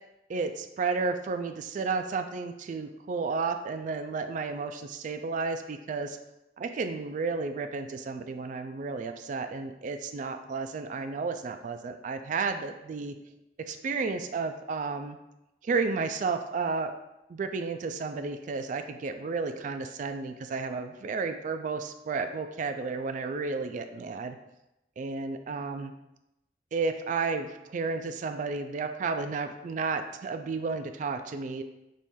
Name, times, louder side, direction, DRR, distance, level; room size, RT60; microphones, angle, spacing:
voice 1, 0.3-6.2 6.6-13.1 13.7-15.2 15.6-16.9 17.3-24.4 25.0-25.9 26.7-31.6, right 4 dB, 45° right, 7 dB, 0.3 m, -32 dB
4.3 x 3.1 x 3.6 m, 0.89 s
head